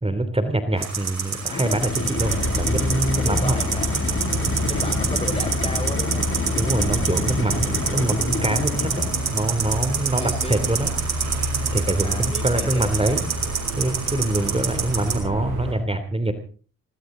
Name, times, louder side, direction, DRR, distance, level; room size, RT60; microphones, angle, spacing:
voice 1, 0.0-3.6 6.6-10.9 11.7-13.2 13.8-16.3, right 1 dB, 20° right, 10 dB, 3.0 m, -24 dB
sound 1, 0.8-15.2, right 6 dB, 55° right, 5.2 m, -28 dB
sound 2, 1.4-9.5, left 4 dB, 40° left, 2.9 m, -29 dB
sound 3, 2.2-15.7, right 1 dB, 75° right, 6.9 m, -29 dB
voice 2, 3.2-4.0 4.7-6.3 10.2-10.6 12.0-13.2, left 2 dB, 20° left, 9 dB, 4.1 m, -34 dB
20.5 x 18.0 x 3.9 m, 0.39 s
supercardioid pair, 50°, 32 cm